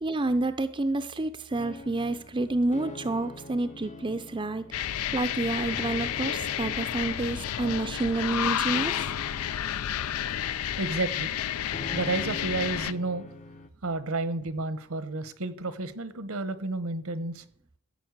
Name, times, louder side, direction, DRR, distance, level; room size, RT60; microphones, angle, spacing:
voice 1, 0.0-9.0, right 2 dB, 20° right, 9 dB, 0.5 m, -29 dB
sound 1, 1.5-13.7, left 2 dB, 30° left, 0.7 m, -44 dB
sound 2, 4.7-12.9, left 10 dB, 80° left, 0.4 m, -31 dB
voice 2, 10.8-11.3 11.9-13.3 13.8-17.4, right 2 dB, 70° right, 14 dB, 1.0 m, -31 dB
14.5 x 5.5 x 8.0 m, 0.65 s
head